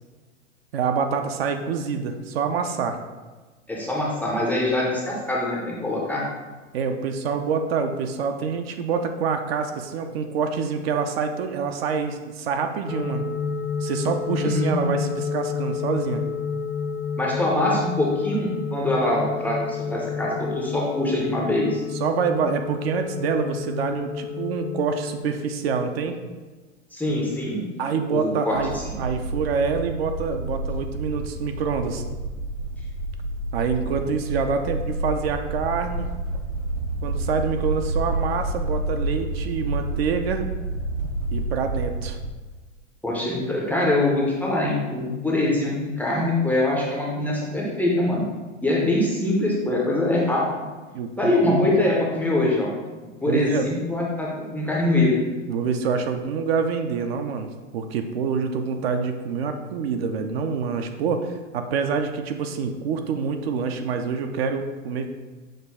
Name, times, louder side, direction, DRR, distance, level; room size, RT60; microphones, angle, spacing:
voice 1, 0.7-3.0 6.7-13.2 13.8-16.2 22.0-26.2 27.8-28.7 29.0-32.0 33.5-36.1 37.0-40.5 41.3-42.2 50.9-51.7 53.3-53.6 55.5-57.5 57.7-65.1, right 5 dB, 50° right, 6 dB, 0.5 m, -26 dB
voice 2, 3.7-6.2 14.4-15.1 17.2-21.8 26.9-27.7 28.1-28.6 43.0-48.3 48.6-50.6 51.2-52.7 53.2-55.2, left 1 dB, 5° left, -4 dB, 0.5 m, -23 dB
sound 1, 12.9-25.2, left 5 dB, 90° left, 0.8 m, -30 dB
sound 2, 28.5-42.3, right 2 dB, 75° right, 0.9 m, -29 dB
6.3 x 2.3 x 3.4 m, 1.3 s
hypercardioid pair, 105°, 38 cm